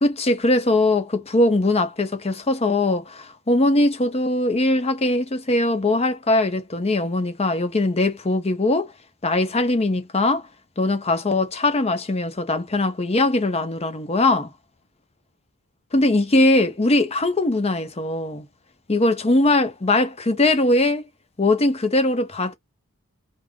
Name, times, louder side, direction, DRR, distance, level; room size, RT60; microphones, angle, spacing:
voice 1, 0.0-8.9 9.2-10.5 10.8-14.5 15.9-18.5 18.9-21.0 21.4-22.5, left 2 dB, 25° left, 0.7 m, -21 dB
3.5 x 2.1 x 3.5 m
head